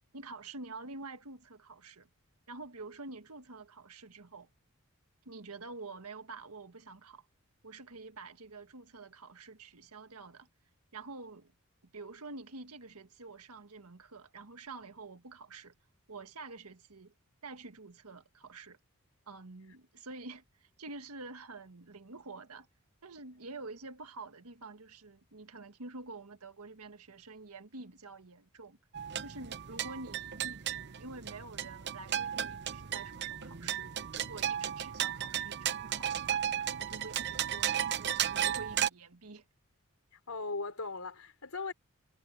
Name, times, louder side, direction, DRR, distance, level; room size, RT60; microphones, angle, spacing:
voice 1, 0.1-2.1 2.5-4.5 5.2-7.3 7.6-10.5 10.9-11.5 11.8-15.7 16.1-17.1 17.4-18.8 19.3-22.7 23.0-28.8 29.2-36.4 36.8-39.4, right 3 dB, 90° right, 1.7 m, -48 dB
sound 1, 28.9-38.9, right 10 dB, 50° right, 0.8 m, -34 dB
voice 2, 40.1-41.7, left 3 dB, 75° left, 3.5 m, -38 dB
head